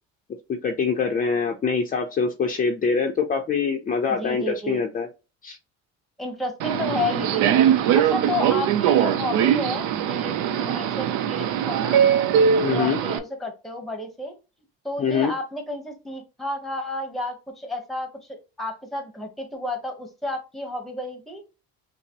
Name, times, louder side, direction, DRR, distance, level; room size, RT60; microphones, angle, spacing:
voice 1, 0.5-5.1 5.4-5.6 12.6-13.0 15.0-15.3, left 5 dB, 30° left, 2 dB, 0.5 m, -24 dB
voice 2, 4.1-4.8 6.2-12.0 12.7-14.3 14.8-21.4, left 2 dB, ahead, 5 dB, 1.0 m, -31 dB
Subway metro underground, 6.6-13.2, right 8 dB, 70° right, 0.5 m, -21 dB
5.6 x 2.0 x 2.8 m, 0.29 s
cardioid pair, 120°, 31 cm